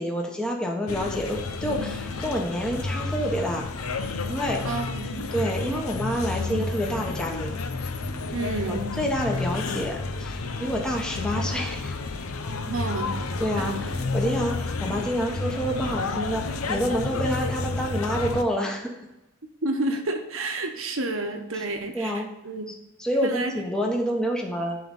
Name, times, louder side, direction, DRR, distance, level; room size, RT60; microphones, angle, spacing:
voice 1, 0.0-3.7 4.3-4.8 5.3-7.5 8.7-12.0 13.4-18.9 21.5-21.6 21.9-22.3 22.7-24.8, equal, 5° left, 0 dB, 1.1 m, -28 dB
sound 1, 0.9-18.4, left 3 dB, 85° left, 0.8 m, -30 dB
voice 2, 4.6-5.2 8.3-8.9 12.6-13.1 13.6-13.7 19.6-22.7 23.2-23.5, right 2 dB, 70° right, 5 dB, 1.2 m, -30 dB
11.0 x 3.9 x 5.4 m, 0.95 s
head